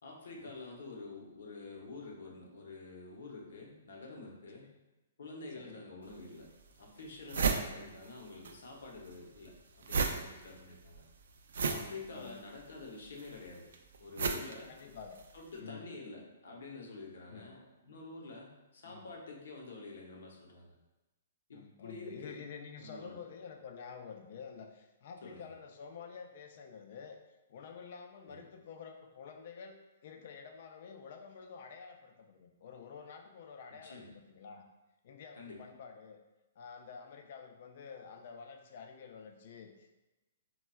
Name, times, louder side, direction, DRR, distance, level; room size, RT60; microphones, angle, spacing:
voice 1, 0.0-4.7 5.2-6.5 6.8-11.0 11.6-13.7 14.0-14.7 15.3-20.7 21.5-22.4 22.8-23.2 25.2-25.5 28.3-28.5 33.8-34.1 35.3-35.6, left 3 dB, 75° left, 0 dB, 0.8 m, -48 dB
sound 1, 6.0-6.1 6.7-6.8 7.0-8.5 8.8-15.4, right 5 dB, 75° right, 0.3 m, -35 dB
voice 2, 11.7-12.4 14.7-15.2 15.6-15.8 17.3-17.5 18.8-19.1 21.5-27.2 27.5-34.6 35.0-36.2 36.6-39.9, left 6 dB, 55° left, 4 dB, 0.4 m, -49 dB
4.1 x 2.2 x 2.2 m, 1.1 s
hypercardioid pair, 155°, 0 cm